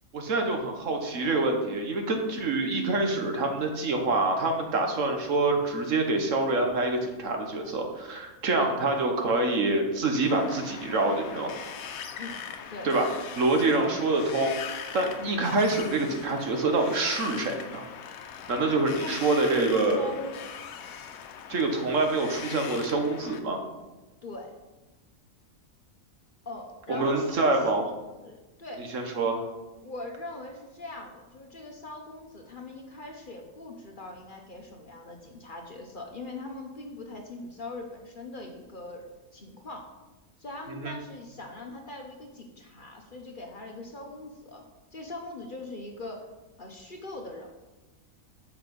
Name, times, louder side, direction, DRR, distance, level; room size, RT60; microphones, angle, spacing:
voice 1, 0.1-11.5 12.8-13.0 13.4-14.5 14.9-17.8 18.5-20.1 21.5-23.6 26.9-27.9 28.8-29.5 40.7-40.9, right 2 dB, 65° right, 3 dB, 1.4 m, -26 dB
Wind, 10.2-23.4, left 7 dB, 80° left, 1.1 m, -41 dB
voice 2, 18.9-20.4 24.2-24.5 26.4-27.7 28.2-28.9 29.8-39.0 39.3-39.9 40.4-44.6 44.9-46.2 46.6-47.5, left 2 dB, 40° left, 2 dB, 1.0 m, -41 dB
8.1 x 5.8 x 5.2 m, 1.1 s
omnidirectional pair, 1.5 m